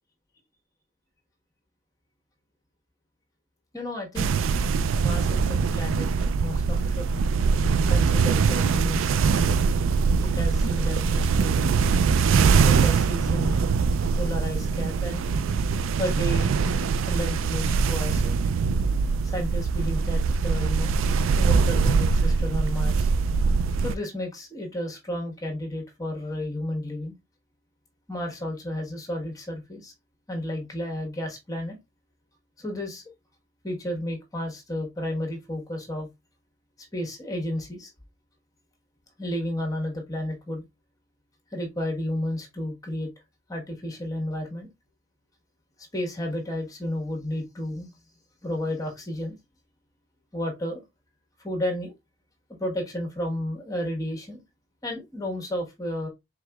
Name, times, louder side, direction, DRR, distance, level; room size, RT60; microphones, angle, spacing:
voice 1, 3.7-4.3 4.9-7.2 7.9-9.6 10.2-11.6 12.6-13.6 14.1-15.2 16.0-16.5 17.1-18.4 19.2-21.0 21.4-23.1 23.8-27.2 28.1-29.9 30.3-31.8 32.6-33.0 33.6-36.1 36.9-37.9 39.2-40.6 41.5-43.1 43.5-44.7 45.9-47.9 48.4-49.4 50.3-50.8 51.4-51.9 52.6-54.4 54.8-56.1, left 1 dB, 15° left, 1.2 m, -32 dB
sound 1, 4.2-24.0, right 5 dB, 75° right, 0.3 m, -23 dB
4.8 x 3.8 x 2.3 m
head